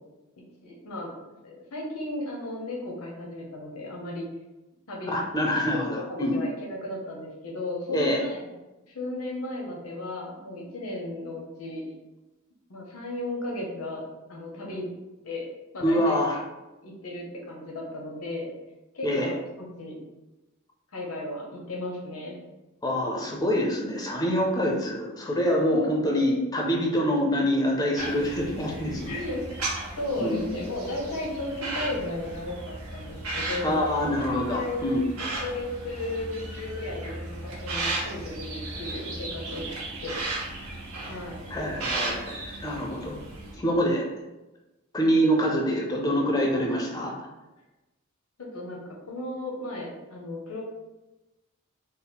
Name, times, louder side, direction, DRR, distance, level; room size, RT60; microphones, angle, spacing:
voice 1, 0.6-1.1 1.4-4.3 4.9-5.2 5.9-8.5 8.8-11.8 12.7-14.0 14.3-14.9 15.2-15.5 15.7-16.4 16.8-18.5 18.9-20.0 20.9-22.4 29.1-29.6 30.0-34.9 35.4-39.7 40.0-40.2 41.1-41.5 48.4-50.6, left 1 dB, 85° left, -1 dB, 0.9 m, -35 dB
voice 2, 5.1-6.4 7.9-8.2 15.8-16.4 19.0-19.3 22.8-29.2 30.2-30.4 33.6-35.0 41.5-43.2 43.5-44.1 44.9-47.1, equal, 15° left, -2 dB, 0.5 m, -25 dB
sound 1, 28.0-43.5, right 2 dB, 80° right, 0.9 m, -35 dB
4.1 x 2.0 x 3.9 m, 1.1 s
head